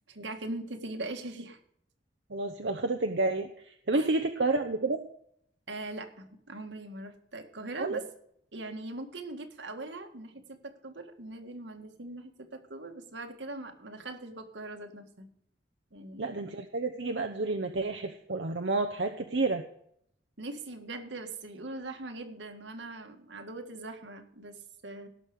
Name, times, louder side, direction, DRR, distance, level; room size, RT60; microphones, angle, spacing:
voice 1, 0.1-1.6 3.9-4.1 5.7-8.0 8.5-15.3 15.9-16.3 20.4-24.6 24.8-25.1, right 2 dB, 85° right, 5 dB, 1.8 m, -41 dB
voice 2, 2.3-5.0 7.8-8.0 16.2-19.6, right 3 dB, 70° right, 5 dB, 0.8 m, -30 dB
17.5 x 6.4 x 5.2 m, 0.70 s
head